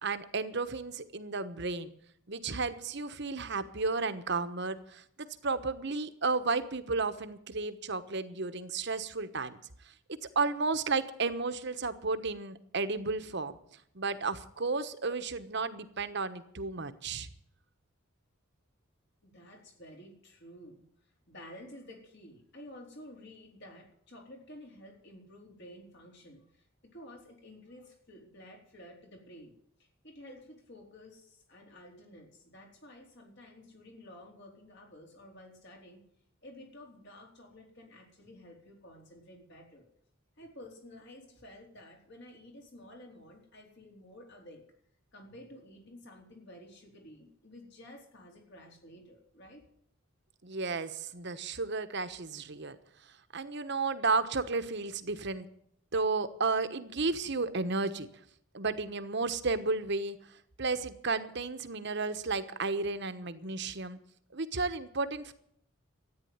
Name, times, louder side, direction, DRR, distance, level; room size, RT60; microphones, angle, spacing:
voice 1, 0.0-1.9 2.3-9.6 9.8-9.9 10.2-13.6 13.9-17.3 50.4-52.8 53.3-55.5 55.9-58.1 58.5-64.0 64.3-65.3, right 3 dB, 55° right, 11 dB, 1.2 m, -33 dB
voice 2, 19.2-26.7 26.9-29.5 29.8-36.0 36.4-39.9 40.4-44.6 45.1-49.7, left 1 dB, 55° left, 2 dB, 4.1 m, -52 dB
13.5 x 9.8 x 9.6 m, 0.69 s
head